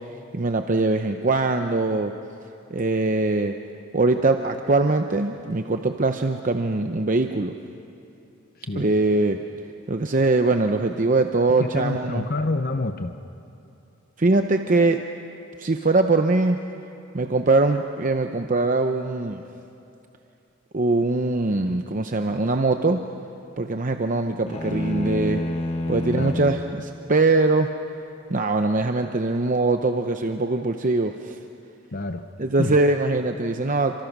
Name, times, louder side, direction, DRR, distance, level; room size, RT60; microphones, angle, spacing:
voice 1, 0.3-2.1 2.7-3.5 3.9-7.5 8.8-9.4 9.9-12.3 14.2-15.0 15.6-16.6 17.1-19.4 20.7-23.0 23.6-25.4 25.9-27.7 28.3-31.4 32.4-34.0, right 2 dB, 40° right, 6 dB, 0.8 m, -22 dB
voice 2, 11.6-13.2 26.1-26.4 31.9-32.3 32.6-32.8, left 2 dB, 45° left, 7 dB, 0.8 m, -27 dB
sound 1, 24.5-26.7, left 1 dB, 30° left, 1.3 m, -28 dB
29.0 x 25.5 x 6.1 m, 2.8 s
head